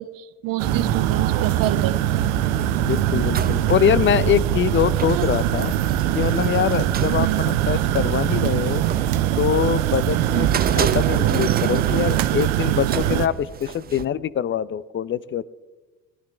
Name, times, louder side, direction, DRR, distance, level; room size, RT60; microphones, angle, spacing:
voice 1, 0.0-2.4 5.1-5.3 7.2-7.4 10.3-10.6, right 14 dB, 50° right, 11 dB, 1.2 m, -28 dB
sound 1, 0.6-14.1, right 7 dB, 20° right, 0.6 m, -28 dB
sound 2, 0.6-13.3, right 13 dB, 70° right, 0.8 m, -23 dB
voice 2, 2.8-5.7 6.1-8.8 9.4-10.5 10.7-15.4, left 9 dB, 25° left, 19 dB, 0.6 m, -23 dB
21.0 x 12.0 x 3.4 m, 1.2 s
hypercardioid pair, 65°, 44 cm